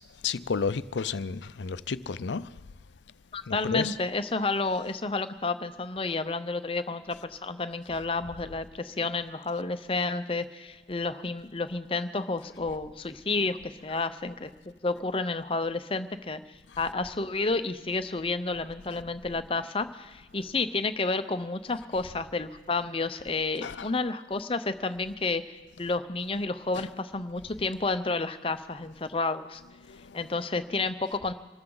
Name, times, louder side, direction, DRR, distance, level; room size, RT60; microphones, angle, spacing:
voice 1, 0.2-2.5 3.5-3.9 23.6-23.9 26.8-26.9 29.9-30.2, left 5 dB, 85° left, 0.5 m, -32 dB
voice 2, 3.3-16.4 16.8-29.6 30.1-31.3, left 3 dB, 30° left, 0.7 m, -31 dB
25.5 x 14.0 x 3.9 m
head